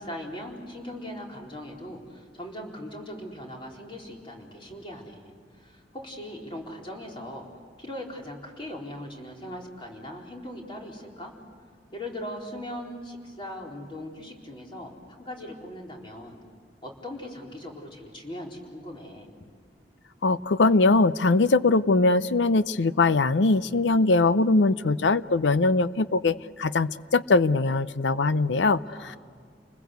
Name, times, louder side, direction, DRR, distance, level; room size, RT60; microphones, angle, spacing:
voice 1, 0.0-7.5 7.8-11.3 11.9-14.9 15.2-16.4 16.8-19.3 28.9-29.2, left 1 dB, 30° left, 0 dB, 4.2 m, -39 dB
voice 2, 20.2-29.2, left 3 dB, 85° left, 15 dB, 0.7 m, -22 dB
29.5 x 21.0 x 8.1 m, 2.1 s
head